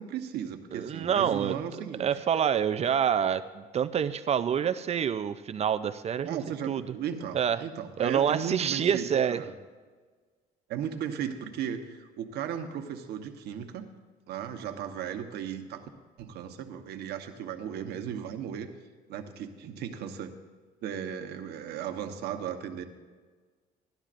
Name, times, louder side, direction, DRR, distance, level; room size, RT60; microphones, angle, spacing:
voice 1, 0.0-2.1 6.2-9.5 10.7-13.9 14.3-15.9 16.2-18.7 19.1-20.3 20.8-22.8, right 9 dB, 75° right, 6 dB, 1.1 m, -36 dB
voice 2, 0.7-1.5 2.0-6.4 6.7-6.9 7.3-7.6 8.0-9.4, right 8 dB, 40° right, 11 dB, 0.5 m, -27 dB
18.0 x 12.0 x 2.5 m, 1.4 s
cardioid pair, 110°, 17 cm